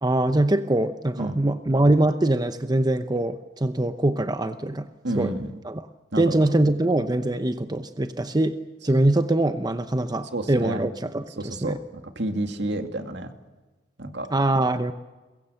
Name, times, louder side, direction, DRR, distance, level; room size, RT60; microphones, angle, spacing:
voice 1, 0.0-4.9 5.2-5.3 5.6-5.8 6.2-8.6 8.8-11.8 14.3-14.9, right 1 dB, 20° right, 9 dB, 0.8 m, -23 dB
voice 2, 5.0-5.5 6.1-6.4 10.3-10.9 11.4-13.3 14.0-14.3, right 1 dB, 70° right, 6 dB, 2.3 m, -30 dB
23.0 x 21.5 x 7.8 m, 1.2 s
head